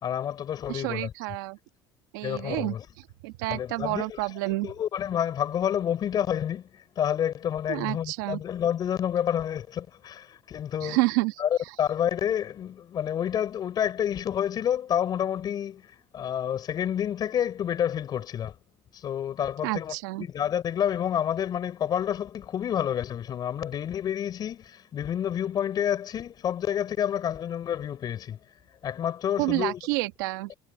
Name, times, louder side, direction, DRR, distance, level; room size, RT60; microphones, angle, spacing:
voice 1, 0.0-1.1 2.2-2.9 3.5-4.3 4.6-11.0 11.4-18.6 18.9-28.4 28.8-29.8 30.5-30.6, left 9 dB, 40° left, 4.7 m, -29 dB
voice 2, 0.7-1.6 2.1-2.7 3.2-4.7 7.7-8.4 10.8-11.3 19.6-20.2 29.4-30.5, right 22 dB, 90° right, 1.5 m, -29 dB
cardioid pair, 120°, 10 cm